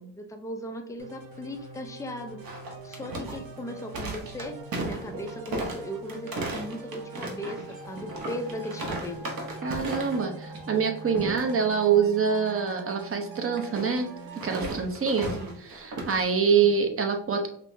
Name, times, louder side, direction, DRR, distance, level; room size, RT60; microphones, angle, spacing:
voice 1, 0.0-2.4 2.8-4.6 4.8-9.3 15.3-15.6 16.5-16.8, equal, 5° left, 4 dB, 0.5 m, -38 dB
sound 1, 1.0-14.7, right 3 dB, 80° right, 1.0 m, -43 dB
sound 2, 2.4-10.3 10.5-10.8 11.1-11.5 13.6-16.2, right 2 dB, 50° right, 1.1 m, -36 dB
voice 2, 9.6-14.1 14.4-17.5, right 6 dB, 30° right, 4 dB, 0.8 m, -25 dB
5.3 x 2.1 x 2.6 m, 0.65 s
cardioid pair, 105°, 45 cm